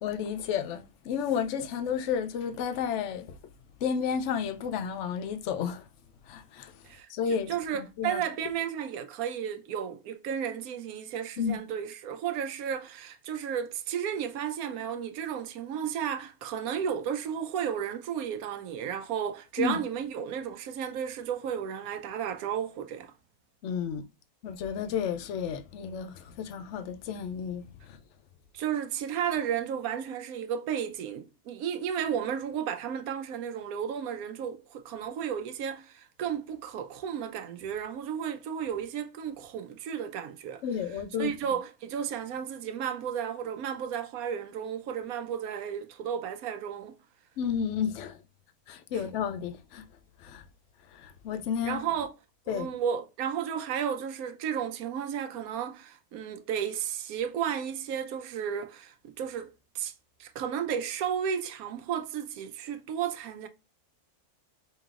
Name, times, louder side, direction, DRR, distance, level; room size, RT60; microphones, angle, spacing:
voice 1, 0.0-3.4 3.8-5.9 6.3-8.2 11.4-11.6 19.6-19.8 23.6-24.0 24.4-28.0 40.6-41.3 47.4-48.2 48.7-49.8 50.2-50.4 50.9-51.8 52.5-52.7, left 7 dB, 65° left, 0.8 m, -32 dB
voice 2, 6.8-23.1 28.5-40.6 41.2-46.9 48.9-49.0 51.7-52.1 52.5-59.9 60.2-63.5, right 8 dB, 75° right, 1.0 m, -33 dB
5.2 x 2.8 x 2.4 m
omnidirectional pair, 1.6 m